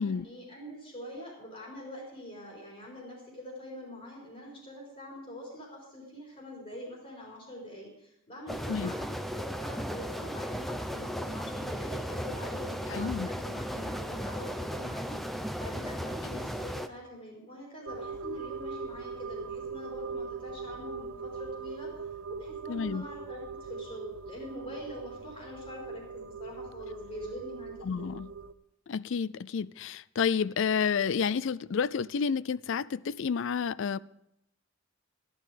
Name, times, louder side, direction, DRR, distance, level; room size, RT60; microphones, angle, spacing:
voice 1, 0.0-28.1, equal, 35° left, 4.2 m, -44 dB
sound 1, 8.5-16.9, equal, ahead, 0.6 m, -36 dB
voice 2, 12.9-13.3 16.2-16.3 22.7-23.1 27.8-28.3 28.9-34.0, left 6 dB, 60° left, 0.4 m, -30 dB
sound 2, 17.9-28.5, right 4 dB, 75° right, 0.7 m, -41 dB
14.5 x 12.0 x 5.0 m
head